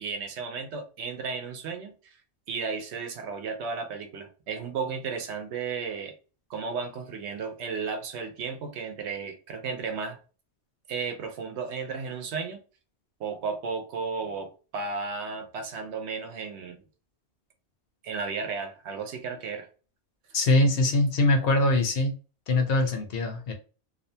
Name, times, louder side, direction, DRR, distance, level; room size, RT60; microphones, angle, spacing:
voice 1, 0.0-2.2 2.5-6.1 6.5-10.2 10.9-12.6 13.2-16.8 18.0-19.7, right 5 dB, 80° right, 0.9 m, -34 dB
voice 2, 20.3-22.1 22.5-23.5, left 2 dB, 65° left, 0.8 m, -23 dB
2.6 x 2.1 x 2.7 m
omnidirectional pair, 1.1 m